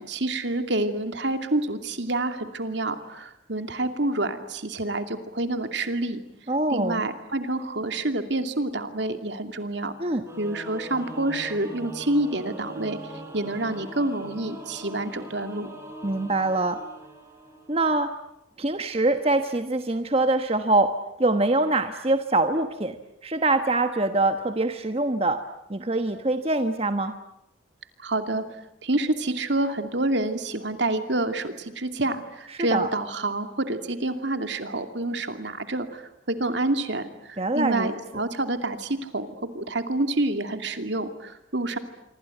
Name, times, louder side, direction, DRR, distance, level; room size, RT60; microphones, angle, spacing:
voice 1, 0.0-6.2 6.7-9.9 10.4-13.0 13.3-15.7 28.0-28.4 28.8-39.3 39.5-41.8, right 2 dB, 65° right, 8 dB, 2.6 m, -28 dB
voice 2, 6.5-7.1 10.0-10.2 16.0-16.8 17.7-18.1 18.6-20.9 21.2-23.0 23.2-25.4 25.7-27.1 32.7-32.9 37.4-37.9, right 2 dB, 30° right, 8 dB, 1.2 m, -24 dB
Singing / Musical instrument, 10.3-18.0, right 1 dB, 15° right, 5.0 m, -41 dB
26.5 x 24.5 x 9.2 m, 0.83 s
head